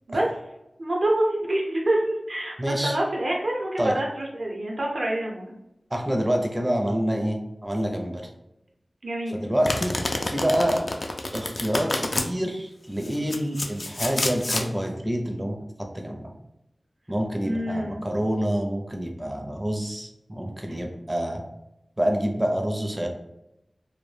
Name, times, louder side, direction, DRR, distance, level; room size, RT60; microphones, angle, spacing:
voice 1, 0.8-2.6 2.8-5.5 9.0-9.4 17.4-18.0 20.7-20.8, right 1 dB, 70° right, -2 dB, 0.7 m, -26 dB
voice 2, 2.6-3.0 3.8-4.0 5.9-8.3 9.3-9.9 10.2-10.8 11.3-16.3 17.1-21.4 22.0-23.1, equal, 25° right, 2 dB, 0.5 m, -27 dB
Domestic sounds home sounds, 9.6-12.3 13.0-14.7, left 2 dB, 55° left, 0.3 m, -28 dB
2.2 x 2.1 x 3.1 m, 0.88 s
wide cardioid pair, 65°, 0 cm